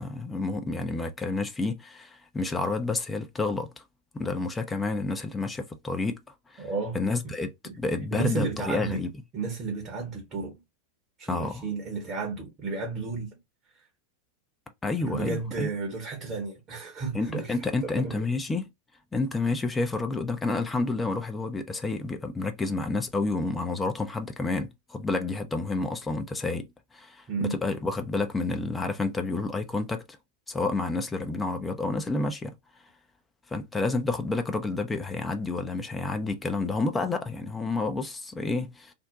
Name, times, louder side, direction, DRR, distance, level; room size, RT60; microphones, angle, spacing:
voice 1, 0.0-3.7 4.1-6.2 6.5-6.6 6.9-9.1 11.3-11.6 14.8-15.7 17.1-18.7 19.1-26.7 26.9-30.0 30.5-32.5 33.5-38.9, left 3 dB, 10° left, 0.5 m, -29 dB
voice 2, 6.6-7.0 7.6-7.7 8.1-10.5 11.2-13.3 15.0-17.5 17.8-18.3 27.3-27.6, right 4 dB, 30° right, 0.8 m, -33 dB
2.6 x 2.1 x 3.8 m
figure-of-eight pair, 90°, 0 cm